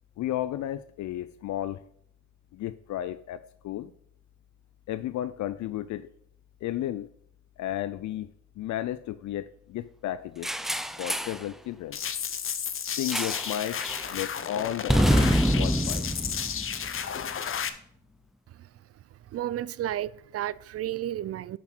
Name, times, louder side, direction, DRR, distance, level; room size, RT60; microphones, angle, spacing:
voice 1, 0.2-1.8 2.5-3.9 4.9-6.1 6.6-7.1 7.6-8.3 8.6-10.5 11.0-12.0 13.0-13.8 14.1-16.1, left 12 dB, 70° left, 0.5 m, -33 dB
sound 1, 10.4-11.4 13.1-13.5 13.8-14.1 14.9-17.2, equal, ahead, 0.5 m, -26 dB
sound 2, 11.9-17.7, left 8 dB, 45° left, 0.8 m, -33 dB
voice 2, 19.3-21.6, right 12 dB, 50° right, 0.4 m, -32 dB
10.0 x 6.1 x 4.4 m
cardioid pair, 90°, 30 cm